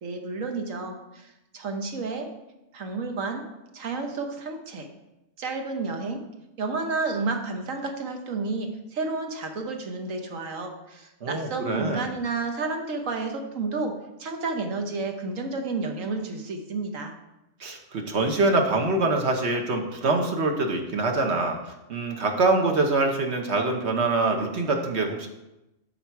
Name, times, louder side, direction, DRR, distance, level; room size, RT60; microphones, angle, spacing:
voice 1, 0.0-2.3 2.7-3.4 3.7-4.9 5.4-6.2 6.6-17.1, right 3 dB, 70° right, 4 dB, 1.4 m, -31 dB
voice 2, 11.2-12.1 17.6-21.6 21.9-25.3, right 3 dB, 55° right, 3 dB, 1.3 m, -24 dB
12.0 x 4.3 x 4.6 m, 0.94 s
omnidirectional pair, 1.4 m